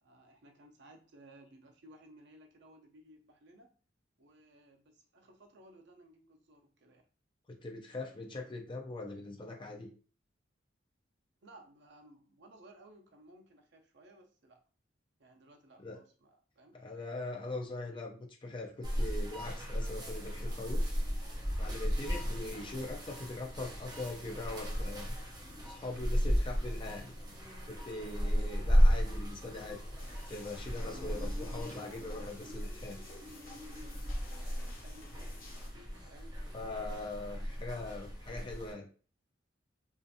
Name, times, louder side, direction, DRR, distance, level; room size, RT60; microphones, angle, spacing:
voice 1, 0.0-3.7 4.2-7.0 11.4-14.6 15.2-16.8 28.1-28.5 34.5-35.6 36.1-37.0, right 1 dB, 65° right, 4 dB, 0.6 m, -59 dB
voice 2, 7.6-9.9 15.8-16.0 16.7-20.9 21.2-21.3 21.6-25.2 25.7-27.1 27.6-29.8 30.3-33.1 36.5-38.9, left 2 dB, 25° left, 2 dB, 0.5 m, -42 dB
sound 1, 18.4-38.3, left 1 dB, 80° left, 0.6 m, -58 dB
sound 2, 18.8-38.7, equal, 20° right, 0.7 m, -34 dB
sound 3, 30.0-35.7, left 3 dB, 50° left, 0.8 m, -55 dB
2.5 x 2.4 x 2.6 m, 0.38 s
head